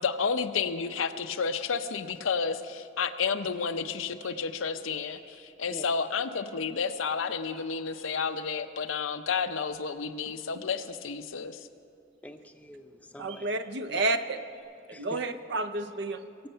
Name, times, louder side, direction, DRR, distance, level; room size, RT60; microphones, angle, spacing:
voice 1, 0.0-11.6, left 5 dB, 90° left, 9 dB, 0.7 m, -31 dB
Bird vocalization bird call bird song, 4.1-9.3 9.7-11.9 12.3-12.4 12.6-12.7 13.0-14.3 14.5-14.6, right 3 dB, 75° right, 2.5 m, -55 dB
voice 2, 12.2-13.5 13.9-14.0 14.9-15.2, left 1 dB, 5° left, 7 dB, 0.6 m, -45 dB
voice 3, 13.2-14.4 14.9-16.3, right 2 dB, 60° right, 10 dB, 0.7 m, -30 dB
21.5 x 7.9 x 5.6 m, 2.4 s
head